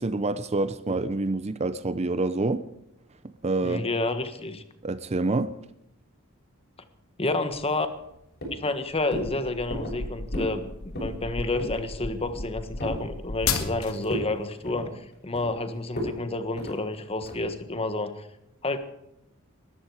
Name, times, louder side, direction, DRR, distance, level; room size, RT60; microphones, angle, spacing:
voice 1, 0.0-2.6 3.4-3.8 4.8-5.5, right 2 dB, 30° right, 0.6 m, -27 dB
voice 2, 3.6-4.6 7.2-7.9 8.5-14.9 15.2-18.3 18.6-18.8, left 2 dB, 25° left, 1.5 m, -29 dB
sound 1, 7.5-8.1 8.4-8.8 9.1-9.3 9.7-10.0 10.3-10.6 10.9-11.2 11.6-11.8 12.2-13.0 13.4-13.8 14.1-14.3 14.6-15.6 16.0-16.2 16.6-16.8 17.2-17.5, equal, 50° left, 7.5 m, -35 dB
sound 2, 9.0-14.1, left 4 dB, 75° left, 2.2 m, -33 dB
20.0 x 14.0 x 4.9 m
head